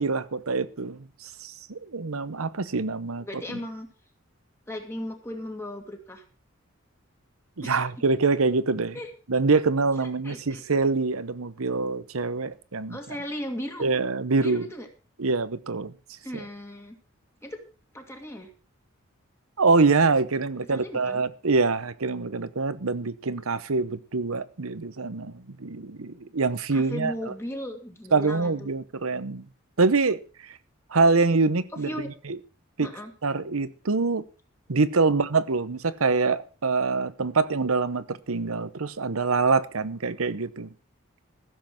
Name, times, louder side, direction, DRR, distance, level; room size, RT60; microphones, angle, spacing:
voice 1, 0.0-3.4 7.6-9.0 9.3-13.0 13.8-14.7 15.2-15.9 16.3-16.5 19.6-27.1 28.1-29.4 29.8-30.6 30.9-31.9 32.3-32.4 32.8-32.9 33.2-34.2 34.7-40.7, right 4 dB, 85° right, 0.9 m, -25 dB
voice 2, 3.2-3.9 4.7-6.2 7.6-7.8 8.9-9.1 10.0-10.6 12.9-13.9 14.4-14.9 16.2-17.0 17.4-17.6 17.9-18.5 20.7-21.2 26.7-28.7 31.7-32.1 32.8-33.1, left 1 dB, 10° left, 2.0 m, -36 dB
15.0 x 7.7 x 6.0 m
head